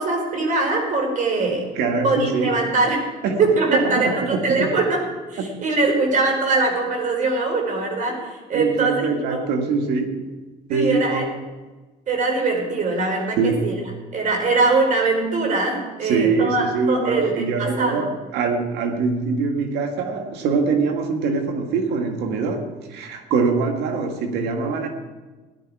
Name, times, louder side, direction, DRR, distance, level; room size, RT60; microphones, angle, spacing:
voice 1, 0.0-1.6 2.0-3.0 3.4-5.0 5.3-8.1 8.5-9.0 9.3-9.4 10.7-11.2 12.1-13.7 14.1-18.0, right 3 dB, 50° right, 2 dB, 4.5 m, -22 dB
voice 2, 1.7-2.6 3.2-3.5 3.7-4.7 5.4-5.5 8.5-10.4 10.7-11.4 13.4-13.7 16.0-24.9, right 4 dB, 85° right, 5 dB, 1.9 m, -23 dB
17.0 x 11.5 x 4.8 m, 1.2 s
cardioid pair, 110°, 17 cm